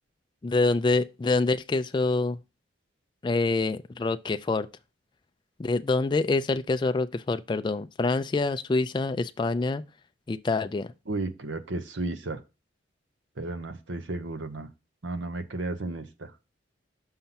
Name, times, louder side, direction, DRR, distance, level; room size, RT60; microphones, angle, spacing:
voice 1, 0.4-2.4 3.2-4.7 5.6-9.8 10.3-10.9, left 3 dB, 25° left, 0.3 m, -26 dB
voice 2, 11.1-12.4 13.4-14.7 15.0-16.3, right 2 dB, 80° right, 0.9 m, -33 dB
5.7 x 5.3 x 5.7 m
head